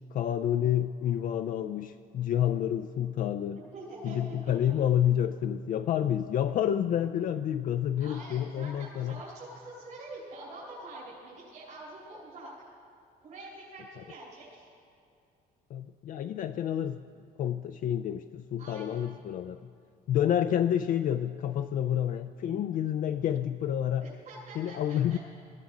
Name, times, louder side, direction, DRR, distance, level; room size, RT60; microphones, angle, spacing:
voice 1, 0.1-3.6 4.0-9.2 15.7-17.0 17.4-19.6 20.1-24.1 24.6-25.2, left 10 dB, 55° left, 8 dB, 0.4 m, -29 dB
voice 2, 3.7-4.2 4.4-4.5 8.0-12.6 13.2-14.7 18.6-19.1 24.0-25.2, right 2 dB, 60° right, -8 dB, 4.6 m, -45 dB
19.5 x 14.5 x 3.8 m, 2.5 s
cardioid pair, 110°, 17 cm